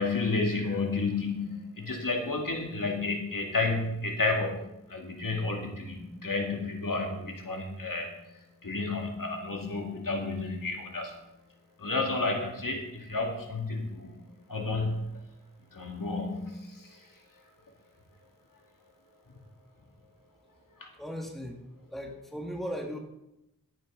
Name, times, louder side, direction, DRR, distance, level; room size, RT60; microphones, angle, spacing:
voice 1, 0.0-4.6 4.9-8.1 8.6-11.1 11.8-14.1 14.5-15.1 15.7-17.1 20.8-20.9, left 3 dB, 75° left, 1 dB, 2.3 m, -31 dB
voice 2, 21.0-21.6 21.9-23.0, equal, ahead, 1 dB, 1.7 m, -37 dB
13.5 x 9.6 x 3.9 m, 0.89 s
wide cardioid pair, 65°, 33 cm